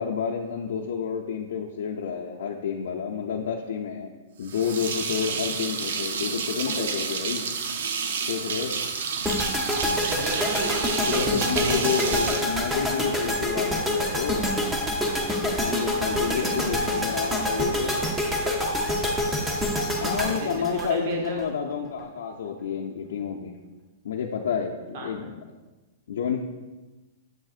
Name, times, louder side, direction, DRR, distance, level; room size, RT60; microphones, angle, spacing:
voice 1, 0.0-4.1 4.4-7.4 8.3-8.8 11.1-14.6 15.5-18.0 20.0-23.5 24.0-25.3 26.1-26.4, left 7 dB, 80° left, -1 dB, 0.5 m, -29 dB
sound 1, 4.4-13.2, right 5 dB, 75° right, 0.6 m, -30 dB
sound 2, 9.2-21.4, left 1 dB, 5° right, 0.7 m, -26 dB
voice 2, 10.1-11.2 11.6-12.4 16.2-16.6 20.2-21.4 24.9-25.3, right 2 dB, 45° right, 1 dB, 1.2 m, -34 dB
7.4 x 6.2 x 2.4 m, 1.2 s
hypercardioid pair, 150°, 0 cm